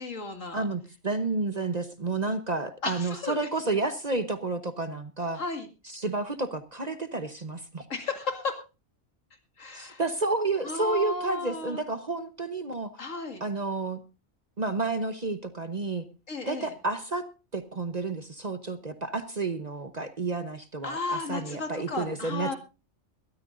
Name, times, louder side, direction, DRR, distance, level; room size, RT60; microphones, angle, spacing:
voice 1, 0.0-0.7 2.8-3.8 5.3-5.7 7.9-8.6 9.6-10.0 10.6-11.8 13.0-13.4 16.3-16.7 20.8-22.6, left 3 dB, 75° left, 6 dB, 2.6 m, -34 dB
voice 2, 0.5-5.4 5.9-7.8 9.7-12.9 13.4-14.0 14.6-16.0 16.4-17.3 17.5-22.5, right 3 dB, 35° right, 10 dB, 1.0 m, -30 dB
22.0 x 13.0 x 2.6 m, 0.30 s
omnidirectional pair, 1.4 m